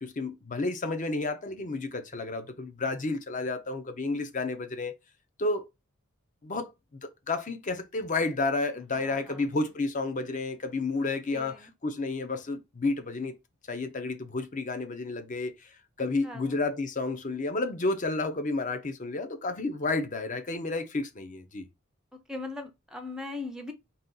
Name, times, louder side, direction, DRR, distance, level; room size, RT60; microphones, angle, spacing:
voice 1, 0.0-4.9 5.4-5.7 6.4-6.7 7.0-13.3 13.7-15.7 16.0-21.7, left 3 dB, 35° left, 0.6 m, -31 dB
voice 2, 8.9-9.4 11.3-11.7 16.0-16.6 22.1-23.7, left 3 dB, 5° right, 0.5 m, -40 dB
4.0 x 2.3 x 3.8 m
head